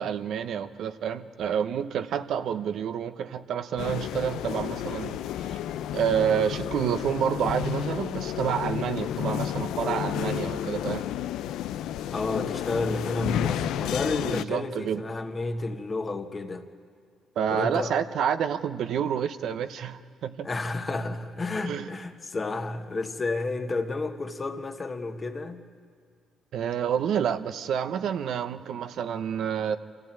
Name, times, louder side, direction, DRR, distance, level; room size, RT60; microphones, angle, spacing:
voice 1, 0.0-5.6 5.9-11.0 14.3-15.0 17.4-20.5 21.7-21.8 26.5-29.8, right 8 dB, 70° right, 0.9 m, -28 dB
sound 1, 3.8-14.4, left 11 dB, 85° left, 0.5 m, -31 dB
voice 2, 12.1-16.7 17.5-18.0 20.4-25.6, left 3 dB, 30° left, 1.5 m, -31 dB
26.5 x 14.5 x 8.9 m
cardioid pair, 90°, 0 cm